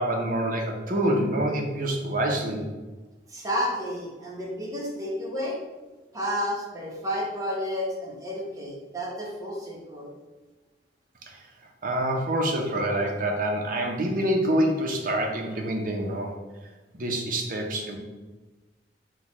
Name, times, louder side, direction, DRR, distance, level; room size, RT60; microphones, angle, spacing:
voice 1, 0.0-2.6 11.2-11.4 11.8-16.3 17.0-18.0, right 1 dB, 50° right, 1 dB, 0.7 m, -26 dB
voice 2, 3.3-5.6 6.1-10.1, equal, 20° right, -4 dB, 0.9 m, -31 dB
6.2 x 2.3 x 3.0 m, 1.2 s
head